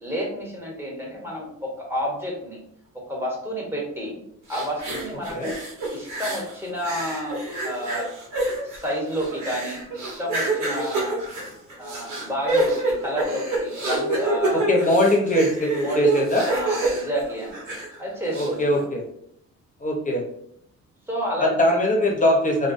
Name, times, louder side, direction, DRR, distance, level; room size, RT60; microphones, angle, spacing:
voice 1, 0.0-2.6 3.1-4.2 4.5-5.5 5.9-7.4 7.6-8.1 8.6-11.2 11.8-14.7 15.8-16.1 16.5-17.6 18.0-18.8 21.1-21.5, equal, 10° right, -3 dB, 1.0 m, -30 dB
sound 1, 4.5-6.5 6.8-18.0 18.3-18.5, right 2 dB, 65° right, 1.1 m, -27 dB
voice 2, 14.7-16.5 18.3-19.0 19.8-20.2 21.4-22.7, left 1 dB, 25° left, 0 dB, 0.7 m, -21 dB
2.3 x 2.2 x 2.6 m, 0.70 s
cardioid pair, 90°, 30 cm